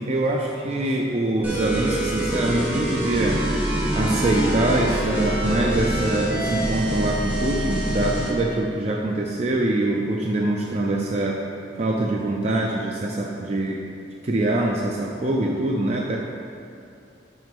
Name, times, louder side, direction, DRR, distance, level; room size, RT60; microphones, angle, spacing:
voice 1, 0.0-3.4 3.9-11.5 11.8-13.8 14.2-16.2, right 2 dB, 35° right, -1 dB, 0.4 m, -24 dB
sound 1, 1.4-8.4, right 1 dB, 10° right, 1.3 m, -25 dB
6.2 x 5.0 x 5.3 m, 2.5 s
head